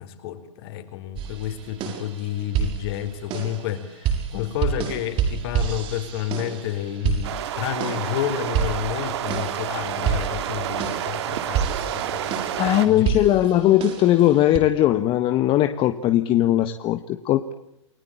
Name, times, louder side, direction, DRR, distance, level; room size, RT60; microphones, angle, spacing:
voice 1, 0.0-12.5 12.8-13.2, left 11 dB, 55° left, 9 dB, 4.5 m, -30 dB
sound 1, 1.2-14.6, right 8 dB, 35° right, 6.3 m, -29 dB
sound 2, 7.2-12.9, right 11 dB, 60° right, 2.7 m, -29 dB
voice 2, 12.6-17.5, left 13 dB, 35° left, 9 dB, 1.4 m, -19 dB
29.5 x 19.0 x 8.9 m, 0.80 s
hypercardioid pair, 110°, 16 cm